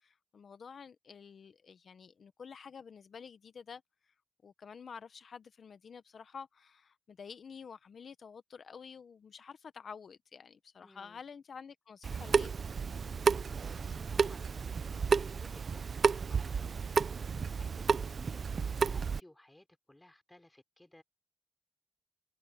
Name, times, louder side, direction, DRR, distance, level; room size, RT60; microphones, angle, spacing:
voice 1, 0.0-3.8 4.4-12.6, left 6 dB, 80° left, 0.8 m, -50 dB
voice 2, 10.8-11.2 13.0-18.4 18.8-21.0, left 1 dB, 15° left, 3.2 m, -60 dB
Water tap faucet / Sink (filling or washing) / Drip, 12.0-19.2, right 5 dB, 70° right, 0.5 m, -32 dB
wide cardioid pair, 90°, 0 cm